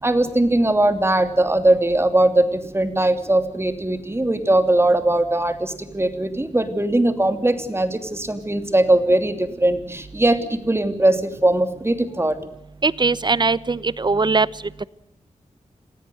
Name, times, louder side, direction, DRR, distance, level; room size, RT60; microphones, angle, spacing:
voice 1, 0.0-12.4, right 1 dB, 20° right, 8 dB, 2.9 m, -20 dB
voice 2, 12.8-14.5, right 4 dB, 35° right, 18 dB, 0.9 m, -20 dB
26.5 x 17.5 x 7.8 m, 0.84 s
cardioid pair, 65°, 13 cm